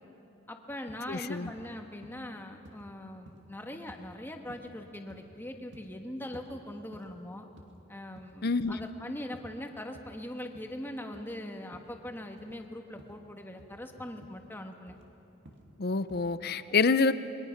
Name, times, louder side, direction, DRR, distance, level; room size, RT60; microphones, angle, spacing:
voice 1, 0.5-7.5 7.9-15.0, left 1 dB, 10° left, 4 dB, 1.4 m, -41 dB
sound 1, 0.9-1.1 1.4-1.7 2.0-2.2 2.6-2.9 3.3-3.5 3.9-4.1 4.5-4.7 5.1-5.3 5.7-5.9 6.3-6.5 6.9-7.2 7.6-7.8 8.0-8.4 8.8-9.0 9.3-9.5 9.9-10.1 10.5-10.8 11.1-11.3 11.7-12.0 12.4-12.6 13.0-13.2 13.6-13.8 14.2-14.4 14.9-15.1 15.5-15.7 16.1-16.2, equal, 60° right, 2.4 m, -53 dB
voice 2, 1.1-1.5 8.4-8.8 15.8-17.1, left 4 dB, 50° left, 14 dB, 0.7 m, -27 dB
28.5 x 22.5 x 5.9 m, 3.0 s
head